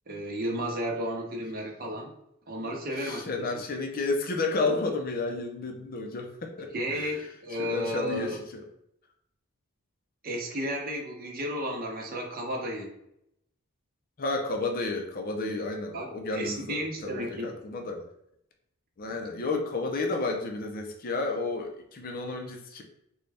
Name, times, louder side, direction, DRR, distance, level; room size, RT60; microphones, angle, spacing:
voice 1, 0.1-2.1 2.5-3.6 6.7-8.4 10.2-12.9 15.4-15.6 15.9-17.5, equal, 40° right, 0 dB, 0.8 m, -33 dB
voice 2, 3.0-7.2 7.6-8.6 14.2-18.1 19.0-22.8, left 3 dB, 40° left, 3 dB, 0.5 m, -31 dB
3.9 x 2.2 x 3.3 m, 0.78 s
head